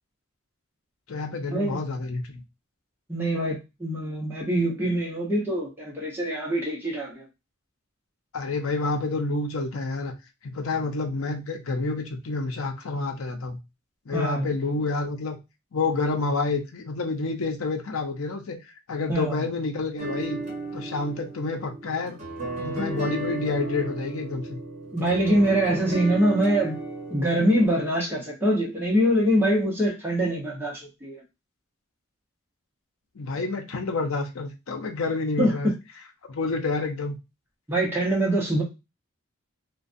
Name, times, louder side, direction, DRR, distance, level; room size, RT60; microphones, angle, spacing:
voice 1, 1.1-2.4 8.3-10.1 10.4-13.6 14.1-15.4 15.7-18.6 18.9-20.4 20.7-22.2 22.6-24.6 33.2-35.7 36.3-37.2, left 3 dB, 75° left, 0.6 m, -28 dB
voice 2, 3.1-7.2 14.1-14.5 19.1-19.3 24.9-26.8 27.1-31.2 35.4-35.5 37.7-38.6, right 1 dB, 10° right, 0.9 m, -24 dB
sound 1, 20.0-27.7, right 2 dB, 35° right, 1.0 m, -34 dB
2.4 x 2.2 x 2.5 m
head